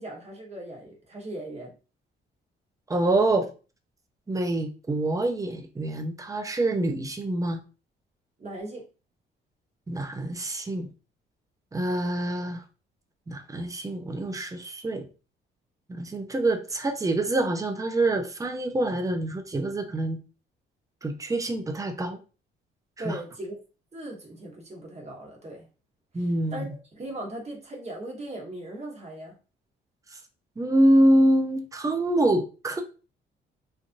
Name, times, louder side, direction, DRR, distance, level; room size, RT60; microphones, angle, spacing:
voice 1, 0.0-1.7 8.4-8.8 23.0-23.6 23.9-25.7 26.1-29.4, right 1 dB, 35° right, 1.3 m, -38 dB
voice 2, 2.9-3.5 4.3-7.6 9.9-10.9 11.7-12.6 13.3-15.0 15.9-20.2 21.0-22.2 23.0-23.2 26.1-26.7 30.6-32.8, right 1 dB, 15° right, 0.6 m, -25 dB
3.2 x 2.5 x 2.6 m
cardioid pair, 90°, 20 cm